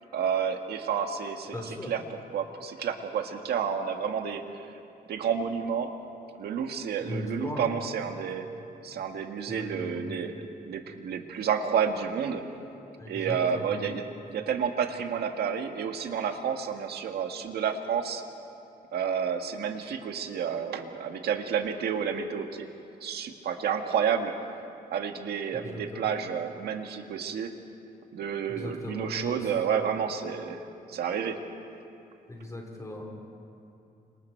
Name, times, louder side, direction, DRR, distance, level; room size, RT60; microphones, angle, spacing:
voice 1, 0.1-4.7 5.1-5.9 6.4-8.5 8.8-12.4 13.1-14.0 14.3-18.2 18.9-22.7 23.0-24.3 24.9-27.5 28.1-30.6 30.9-31.4, right 7 dB, 90° right, 5 dB, 1.8 m, -30 dB
voice 2, 1.5-1.9 7.1-7.7 9.5-10.0 13.0-13.7 25.6-26.1 28.5-29.5 32.3-33.1, left 2 dB, 20° left, 1 dB, 4.3 m, -38 dB
29.5 x 26.5 x 4.6 m, 2.8 s
cardioid pair, 130°, 16 cm